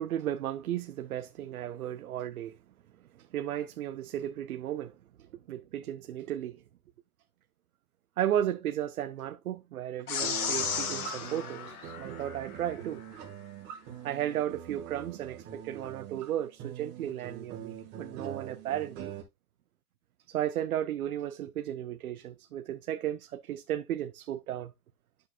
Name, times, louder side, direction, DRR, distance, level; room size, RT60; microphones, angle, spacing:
voice 1, 0.0-2.6 3.2-5.0 5.5-6.6 8.2-13.0 14.0-19.1 20.3-24.7, right 11 dB, 65° right, 0.8 m, -34 dB
sound 1, 10.1-12.7, left 7 dB, 70° left, 2.0 m, -34 dB
sound 2, 10.2-19.2, right 9 dB, 20° right, 1.6 m, -43 dB
11.5 x 6.4 x 2.3 m
hypercardioid pair, 165°, 46 cm